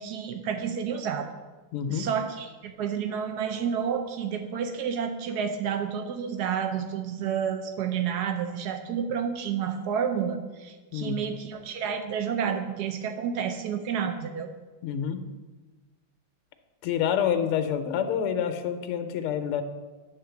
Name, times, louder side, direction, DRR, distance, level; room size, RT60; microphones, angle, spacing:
voice 1, 0.0-1.3 1.9-14.5, right 7 dB, 85° right, 6 dB, 0.8 m, -30 dB
voice 2, 1.7-2.1 10.9-11.2 14.8-15.3 16.8-19.6, left 8 dB, 90° left, 8 dB, 1.6 m, -27 dB
9.2 x 3.7 x 6.9 m, 1.3 s
omnidirectional pair, 2.4 m